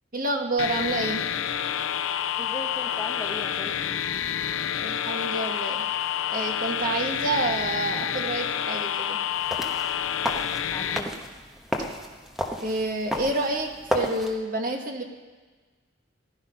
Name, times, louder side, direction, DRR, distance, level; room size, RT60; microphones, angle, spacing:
voice 1, 0.1-1.2 4.8-5.8 6.3-9.2 12.6-15.0, right 2 dB, 45° right, 3 dB, 1.4 m, -28 dB
sound 1, 0.6-11.0, left 9 dB, 80° left, 0.5 m, -28 dB
voice 2, 2.4-4.0 10.7-11.1, left 1 dB, 15° left, 3 dB, 0.7 m, -37 dB
sound 2, 9.3-14.3, equal, ahead, 1.0 m, -32 dB
15.5 x 11.5 x 5.4 m, 1.3 s
head